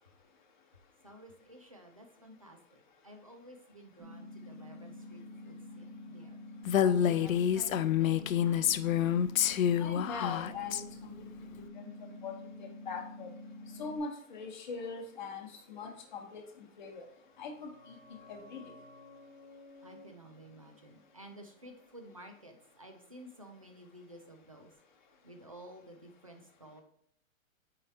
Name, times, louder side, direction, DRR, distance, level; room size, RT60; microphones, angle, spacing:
voice 1, 1.0-6.4 6.8-8.1 8.4-9.2 19.8-24.7 25.2-26.8, right 1 dB, 25° right, 4 dB, 0.4 m, -53 dB
sound 1, 4.0-14.0, left 1 dB, 85° right, 2.1 m, -48 dB
Female speech woman speaking, 6.7-10.8, left 9 dB, 70° left, 0.6 m, -28 dB
voice 2, 9.8-11.3 11.6-13.3 13.7-17.1 17.4-18.0 18.3-18.7, left 4 dB, 35° left, 2 dB, 1.1 m, -42 dB
sound 2, 17.0-22.4 22.6-22.7, left 2 dB, 5° left, 1.8 m, -57 dB
7.6 x 4.8 x 2.8 m, 0.70 s
hypercardioid pair, 180°, 42 cm